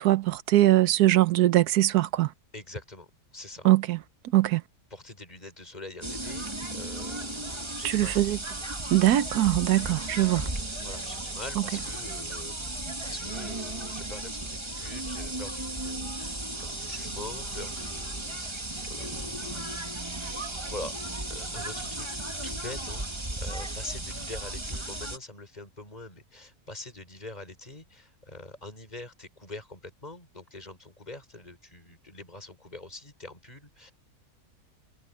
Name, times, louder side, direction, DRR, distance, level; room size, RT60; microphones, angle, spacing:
voice 1, 0.0-2.3 3.6-4.0 4.3-4.6 7.8-8.4 8.9-10.4, right 15 dB, 85° right, 1.3 m, -22 dB
voice 2, 2.5-3.7 4.9-8.2 10.8-20.3 20.6-22.1 22.4-33.9, left 2 dB, 25° left, 5.8 m, -44 dB
sound 1, 6.0-25.2, right 2 dB, 20° right, 1.8 m, -35 dB
omnidirectional pair, 1.6 m